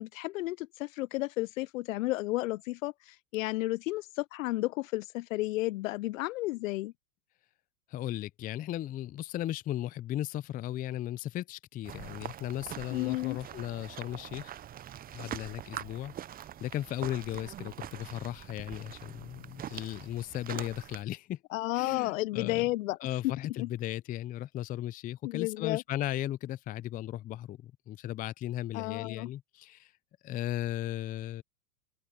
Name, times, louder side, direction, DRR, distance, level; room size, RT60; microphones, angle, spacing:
voice 1, 0.0-6.9 12.9-13.4 21.5-23.0 23.2-23.3 23.6-23.7 25.2-25.8 28.7-29.3, left 19 dB, 60° left, 0.6 m, -32 dB
voice 2, 7.9-14.5 15.1-16.1 16.6-21.4 21.7-22.6 23.0-29.9 30.2-31.4, left 13 dB, 20° left, 0.5 m, -36 dB
sound 1, 11.8-21.0, right 11 dB, 20° right, 0.7 m, -44 dB
hypercardioid pair, 105°, 45 cm